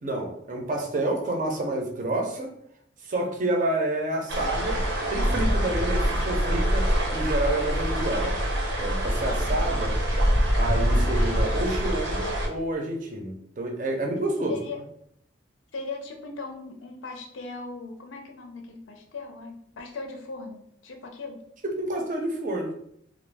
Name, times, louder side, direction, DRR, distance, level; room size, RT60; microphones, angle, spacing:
voice 1, 0.0-2.5 3.0-4.8 5.1-8.4 8.8-9.9 10.6-14.6 21.6-22.7, right 1 dB, 45° right, 2 dB, 0.5 m, -29 dB
sound 1, 4.3-12.5, equal, 75° right, 0.7 m, -25 dB
voice 2, 14.5-14.8 15.7-21.4, left 3 dB, 85° left, 4 dB, 0.4 m, -38 dB
2.4 x 2.0 x 3.2 m, 0.71 s
head